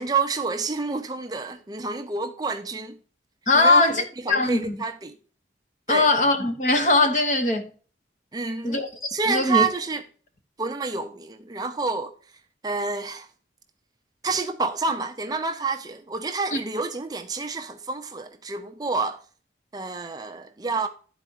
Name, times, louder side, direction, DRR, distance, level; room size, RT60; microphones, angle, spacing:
voice 1, 0.0-3.0 3.5-5.2 5.9-6.1 8.3-8.8 9.1-10.0 10.6-12.1 12.6-13.3 14.2-19.2 19.7-20.9, right 4 dB, 20° right, 0.5 m, -28 dB
voice 2, 3.5-4.0 4.3-4.8 5.9-7.7 8.6-8.9 9.2-9.6 16.5-16.6, left 2 dB, 45° left, 1.2 m, -20 dB
11.0 x 4.3 x 4.6 m
head